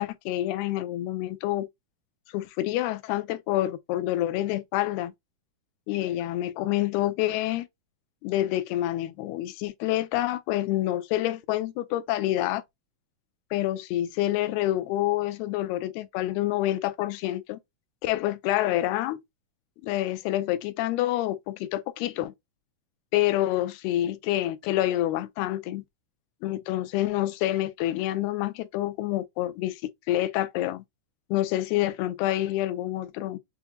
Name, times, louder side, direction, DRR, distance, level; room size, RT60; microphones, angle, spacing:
voice 1, 0.0-1.7 2.3-5.1 5.9-7.7 8.2-12.6 13.5-17.6 18.0-19.2 19.8-22.3 23.1-25.8 26.4-29.8 30.1-30.8 31.3-33.4, left 14 dB, 85° left, 2.6 m, -27 dB
6.9 x 2.9 x 2.2 m
omnidirectional pair, 4.5 m